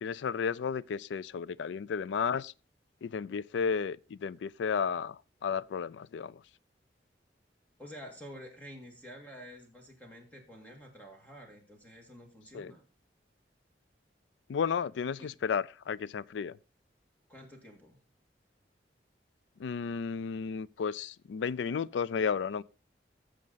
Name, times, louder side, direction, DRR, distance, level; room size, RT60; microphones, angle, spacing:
voice 1, 0.0-2.5 3.0-5.2 5.4-6.3 12.5-12.7 14.5-16.5 19.6-22.6, left 6 dB, 85° left, 0.3 m, -33 dB
voice 2, 7.8-12.8 15.2-15.3 17.3-18.0, equal, 10° left, 1.9 m, -49 dB
15.0 x 5.1 x 4.0 m
head